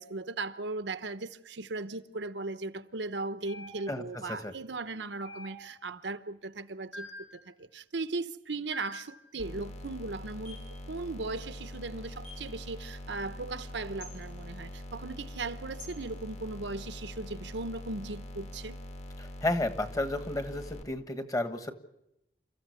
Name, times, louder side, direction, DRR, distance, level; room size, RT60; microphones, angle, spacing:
voice 1, 0.0-7.1 7.5-10.6 10.9-18.8, right 3 dB, 80° right, 0.9 m, -37 dB
sound 1, 3.5-4.1 5.3-5.9 6.9-7.4 8.7-9.1 10.5-10.7 12.2-12.5 14.0-14.2 15.8-16.0, left 1 dB, 85° left, 7.9 m, -46 dB
voice 2, 3.9-4.5 19.2-21.7, left 2 dB, 20° left, 1.4 m, -32 dB
sound 2, 9.4-20.8, left 1 dB, 35° left, 1.6 m, -43 dB
29.0 x 14.0 x 8.3 m
head